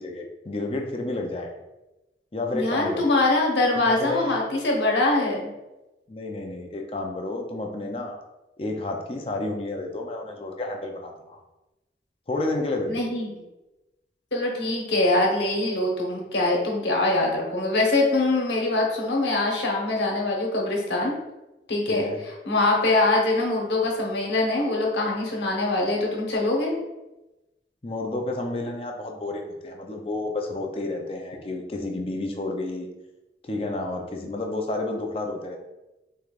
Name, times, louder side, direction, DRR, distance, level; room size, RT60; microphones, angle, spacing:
voice 1, 0.0-1.5 2.3-3.1 3.8-4.4 6.1-8.2 8.6-11.4 12.3-13.0 21.9-22.2 27.8-32.9 33.4-35.6, left 2 dB, 30° left, 2 dB, 0.5 m, -30 dB
voice 2, 2.5-5.5 12.9-13.3 14.3-21.1 21.7-22.1 22.4-26.8, left 2 dB, 80° left, -1 dB, 1.1 m, -23 dB
5.1 x 3.2 x 2.4 m, 0.99 s
head